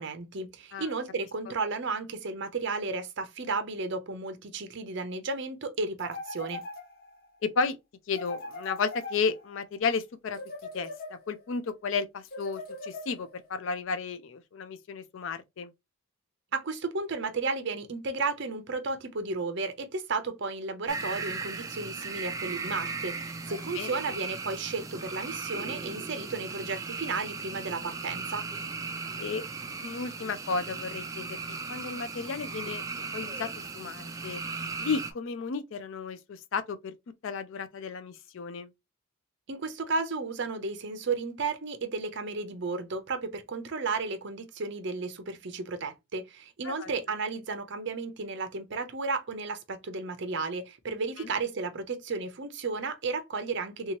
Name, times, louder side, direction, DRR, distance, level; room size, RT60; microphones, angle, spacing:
voice 1, 0.0-6.6 16.5-28.5 39.5-53.9, right 4 dB, 55° right, 0.6 m, -33 dB
sound 1, 6.0-7.3 8.1-9.6 10.3-11.5 12.3-13.5, left 2 dB, 45° left, 0.8 m, -41 dB
voice 2, 7.4-7.8 8.1-10.4 10.7-15.7 23.5-24.0 29.2-29.5 29.8-31.4 31.7-33.5 33.7-34.4 34.8-36.9 37.2-38.7 46.6-46.9 51.2-51.3, left 5 dB, 60° left, 0.4 m, -33 dB
sound 2, 20.9-35.1, right 4 dB, 15° right, 0.3 m, -37 dB
3.4 x 2.9 x 2.8 m
head